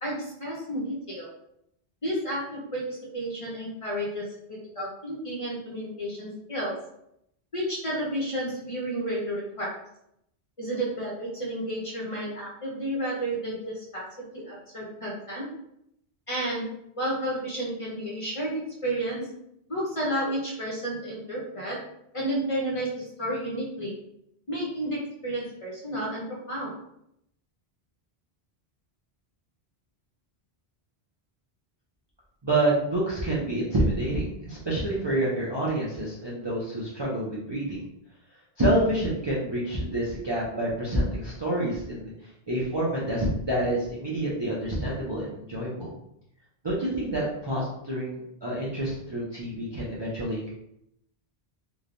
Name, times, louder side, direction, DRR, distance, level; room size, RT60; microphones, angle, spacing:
voice 1, 0.0-1.3 2.0-6.7 7.5-9.8 10.6-15.5 16.3-16.7 17.0-19.3 19.7-21.8 22.1-23.9 24.5-26.7, right 1 dB, 35° left, -5 dB, 0.7 m, -31 dB
voice 2, 32.4-37.8 38.6-42.1 42.5-45.9 46.6-50.5, right 1 dB, 35° right, -7 dB, 0.5 m, -28 dB
3.1 x 2.2 x 2.5 m, 0.77 s
omnidirectional pair, 1.0 m